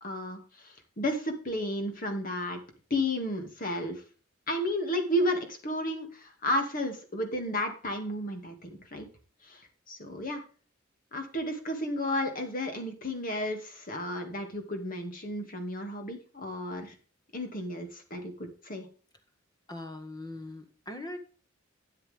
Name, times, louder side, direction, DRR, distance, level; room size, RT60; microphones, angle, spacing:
voice 1, 0.0-2.6 2.9-4.0 4.5-9.1 9.4-9.6 9.9-10.4 11.1-16.9 17.3-18.9, left 1 dB, 45° left, 5 dB, 2.4 m, -32 dB
voice 2, 19.7-21.2, left 1 dB, 20° left, 7 dB, 1.8 m, -41 dB
12.5 x 9.1 x 3.6 m, 0.39 s
head